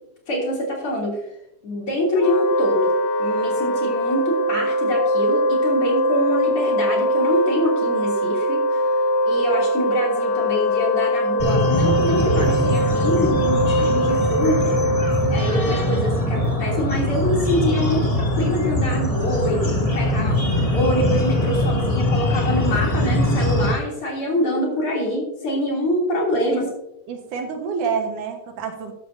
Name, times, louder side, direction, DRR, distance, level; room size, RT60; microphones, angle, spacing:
voice 1, 0.3-1.2 1.6-2.9 3.2-8.8 9.2-14.8 15.3-20.4 20.7-26.6, equal, 45° left, -2 dB, 4.0 m, -25 dB
Wind instrument woodwind instrument, 2.1-15.5, equal, 85° left, 2.5 m, -22 dB
sound 1, 11.4-23.7, left 1 dB, 20° left, 0.9 m, -22 dB
voice 2, 27.1-28.9, right 6 dB, 75° right, 4 dB, 2.9 m, -27 dB
13.0 x 11.5 x 2.7 m, 0.84 s
omnidirectional pair, 3.6 m